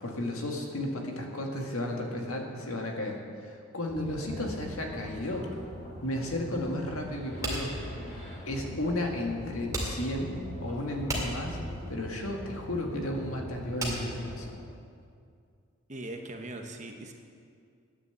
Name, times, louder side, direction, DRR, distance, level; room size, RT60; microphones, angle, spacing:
voice 1, 0.0-5.5 6.0-7.7 8.5-11.6 11.9-14.5, left 1 dB, 85° left, 2 dB, 1.9 m, -33 dB
sound 1, 3.9-14.5, equal, 40° left, 2.9 m, -42 dB
sound 2, 7.4-15.1, right 1 dB, 15° right, 2.1 m, -37 dB
voice 2, 15.9-17.1, right 2 dB, 35° right, 4 dB, 1.0 m, -41 dB
10.0 x 9.7 x 8.0 m, 2.3 s
head